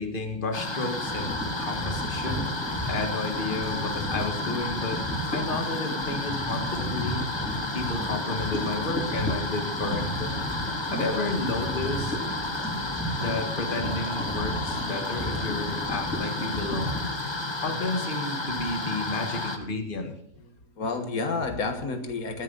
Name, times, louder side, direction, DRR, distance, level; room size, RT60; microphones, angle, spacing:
voice 1, 0.0-7.3 7.7-10.4 10.9-12.2 13.2-17.1 17.5-20.1, left 3 dB, 35° left, 5 dB, 1.9 m, -32 dB
sound 1, 0.5-19.6, left 2 dB, 20° left, 1.2 m, -32 dB
sound 2, 0.9-17.1, equal, 5° right, 5.7 m, -34 dB
voice 2, 9.9-10.9 15.1-15.3 17.0-17.8 18.6-18.7 20.8-22.4, left 3 dB, 85° left, 6 dB, 1.9 m, -33 dB
19.0 x 10.5 x 4.0 m, 0.67 s
omnidirectional pair, 1.5 m